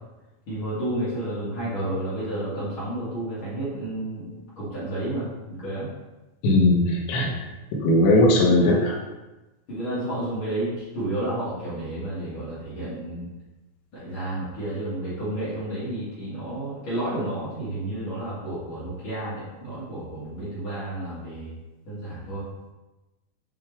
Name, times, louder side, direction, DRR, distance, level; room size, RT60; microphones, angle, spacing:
voice 1, 0.5-4.2 4.5-5.9 8.3-9.0 9.7-13.3 13.9-21.5 21.8-22.4, right 1 dB, 55° left, -11 dB, 1.4 m, -31 dB
voice 2, 6.4-7.3 7.8-8.9, left 1 dB, 75° left, -1 dB, 3.1 m, -18 dB
8.9 x 3.5 x 3.4 m, 1.1 s
omnidirectional pair, 5.7 m